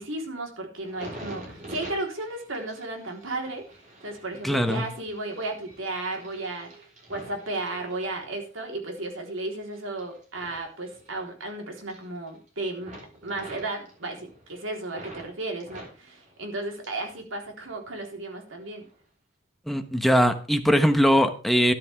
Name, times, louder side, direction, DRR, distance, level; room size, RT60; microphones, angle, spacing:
voice 1, 0.0-12.9 13.2-18.9, right 2 dB, 85° right, 2 dB, 3.8 m, -34 dB
sound 1, 0.8-8.4 8.9-11.5 11.8-12.5 12.8-15.3 15.6-17.2 17.5-18.2 18.7-18.9, right 1 dB, 40° right, 4.7 m, -46 dB
voice 2, 4.4-4.8 19.7-21.7, equal, ahead, 6 dB, 1.0 m, -21 dB
13.0 x 11.0 x 3.5 m, 0.38 s
head